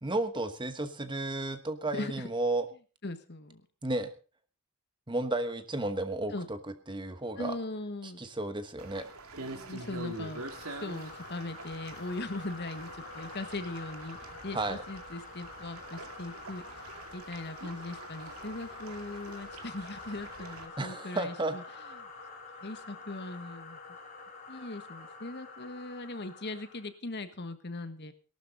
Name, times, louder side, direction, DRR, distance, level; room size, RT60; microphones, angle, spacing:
voice 1, 0.0-2.7 3.8-4.1 5.1-6.6 6.9-7.5 8.2-9.1 14.5-14.8 20.8-21.5, right 2 dB, 20° right, 10 dB, 1.2 m, -32 dB
voice 2, 1.9-2.3 3.0-3.6 6.3-6.5 7.4-8.2 9.4-16.8 17.1-21.6 21.9-22.1 22.6-23.8 24.5-28.1, left 2 dB, 50° left, 11 dB, 1.4 m, -40 dB
sound 1, 8.8-20.7, right 2 dB, 80° right, 2.4 m, -45 dB
sound 2, 9.9-26.9, left 3 dB, 35° left, 5.8 m, -47 dB
18.0 x 12.0 x 3.9 m, 0.35 s
head